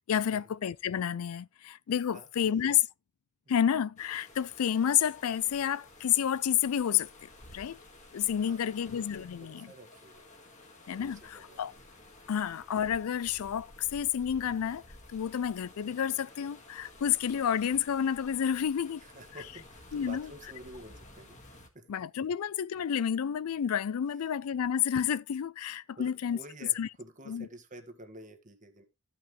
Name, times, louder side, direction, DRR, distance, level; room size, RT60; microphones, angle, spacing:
voice 1, 0.1-2.8 3.5-7.8 8.1-9.7 10.9-11.7 12.3-14.8 15.1-19.0 19.9-20.3 21.9-26.4 26.8-26.9 27.3-27.5, left 9 dB, 80° left, 0.4 m, -30 dB
voice 2, 2.1-2.7 8.4-10.3 11.0-11.6 19.0-21.9 24.1-24.2 24.5-24.6 26.0-28.8, right 1 dB, 35° right, 1.6 m, -50 dB
sound 1, 4.0-21.7, left 2 dB, 35° left, 1.8 m, -53 dB
14.0 x 5.8 x 3.1 m
head